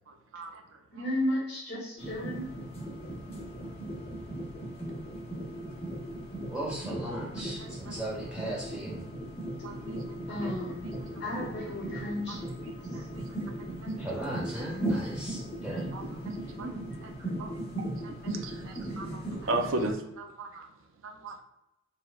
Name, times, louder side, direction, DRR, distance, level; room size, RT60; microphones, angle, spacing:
voice 1, 0.1-0.8 7.9-8.0 9.6-10.2 12.3-12.4 12.7-13.2 13.6-13.9 14.3-14.4 15.9-16.7 17.2-20.7 21.0-21.4, right 2 dB, 70° right, 4 dB, 0.4 m, -37 dB
voice 2, 0.9-2.5 10.3-10.8 11.2-12.6 12.9-13.1 16.6-16.7, left 1 dB, 55° left, -5 dB, 1.2 m, -34 dB
sound 1, 2.0-19.9, right 1 dB, 30° left, 0.8 m, -37 dB
voice 3, 6.5-9.0 14.0-15.9, right 1 dB, 5° right, -5 dB, 1.1 m, -37 dB
4.2 x 2.1 x 2.4 m, 0.90 s
head